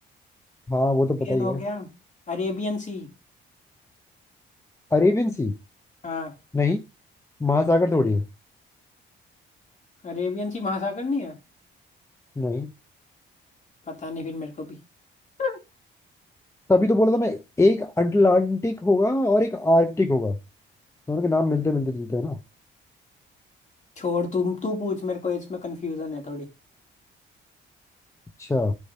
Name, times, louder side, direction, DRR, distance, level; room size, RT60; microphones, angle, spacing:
voice 1, 0.7-1.6 4.9-5.5 6.5-6.8 7.4-8.2 12.4-12.7 16.7-20.4 21.1-22.4 28.4-28.7, left 2 dB, 15° left, 0.9 m, -21 dB
voice 2, 1.2-1.9 2.3-3.1 6.0-6.3 10.0-11.4 13.9-14.8 15.4-15.6 24.0-26.5, left 4 dB, 40° left, 3.3 m, -29 dB
13.0 x 4.8 x 2.9 m
cardioid pair, 90°, 20 cm